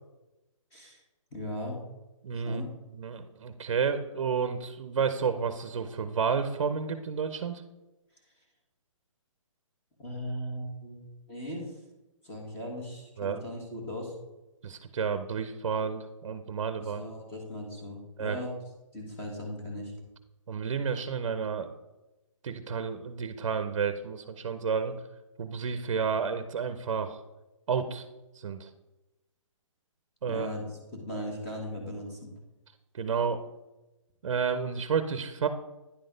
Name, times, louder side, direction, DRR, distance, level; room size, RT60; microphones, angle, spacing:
voice 1, 1.3-1.8 2.3-2.7 10.0-11.6 12.2-14.1 16.8-18.6 18.9-19.9 30.2-32.3, equal, 15° left, -1 dB, 1.5 m, -38 dB
voice 2, 2.2-7.6 13.2-13.4 14.6-17.1 18.2-18.4 20.5-21.7 22.4-24.9 25.4-27.2 27.7-28.1 28.3-28.7 30.2-30.5 32.9-33.4 34.2-35.5, right 6 dB, 60° right, 10 dB, 0.7 m, -31 dB
10.0 x 4.0 x 5.1 m, 1.0 s
hypercardioid pair, 170°, 17 cm